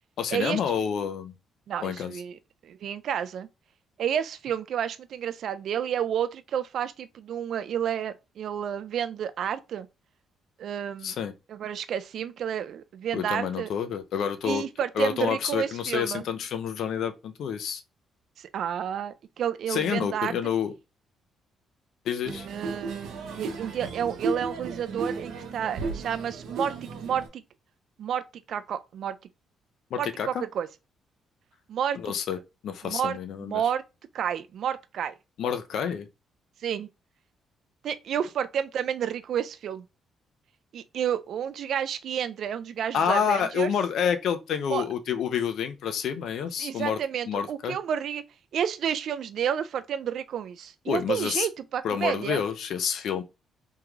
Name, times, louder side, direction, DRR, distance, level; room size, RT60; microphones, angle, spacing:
voice 1, 0.2-1.3 1.8-2.1 11.0-11.3 13.1-14.6 15.0-17.8 19.7-20.7 22.1-22.5 29.9-30.4 32.0-32.4 32.6-33.6 35.4-36.1 42.9-47.0 47.3-47.8 50.9-51.5 51.8-53.2, left 7 dB, 70° left, 0.4 m, -28 dB
voice 2, 1.7-3.5 4.0-9.9 10.6-11.2 11.5-13.7 14.4-16.2 18.4-20.3 22.5-27.4 28.0-29.2 30.0-30.7 31.7-32.1 32.8-33.2 33.5-33.8 34.1-35.1 36.6-36.9 37.8-39.8 40.7-43.7 44.7-44.8 46.6-48.2 48.5-52.4, right 9 dB, 65° right, 0.3 m, -30 dB
sound 1, 22.2-27.3, right 4 dB, 85° right, 0.7 m, -34 dB
3.6 x 3.0 x 2.3 m
cardioid pair, 90°, 0 cm